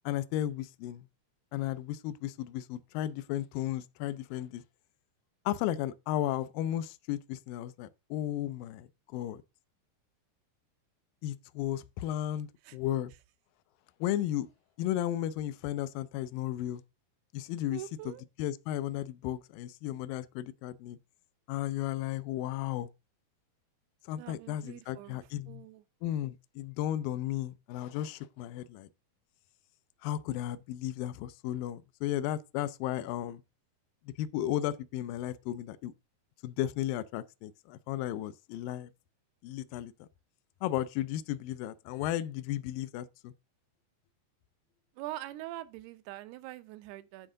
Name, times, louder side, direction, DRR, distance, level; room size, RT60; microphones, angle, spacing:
voice 1, 0.1-1.1 1.5-4.6 5.5-9.4 11.2-13.1 14.0-14.5 14.8-16.8 17.3-17.8 18.1-18.2 18.4-21.0 21.5-22.9 24.1-25.6 26.0-28.9 30.0-33.4 34.1-35.9 36.4-38.9 39.4-40.1 40.6-43.3, left 12 dB, 80° left, 2.1 m, -34 dB
voice 2, 17.7-18.2 24.2-25.2 25.5-25.8 44.9-47.3, right 15 dB, 85° right, 2.8 m, -43 dB
9.9 x 3.7 x 6.3 m
omnidirectional pair, 4.5 m